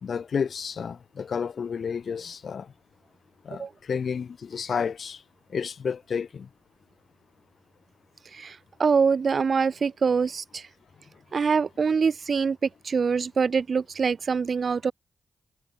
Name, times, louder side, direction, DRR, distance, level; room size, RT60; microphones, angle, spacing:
voice 1, 0.0-2.7 3.4-5.2 5.5-6.5, left 6 dB, 70° left, 1.5 m, -31 dB
voice 2, 8.3-10.6 11.3-14.9, right 5 dB, 60° right, 1.1 m, -24 dB
cardioid pair, 55°, 0 cm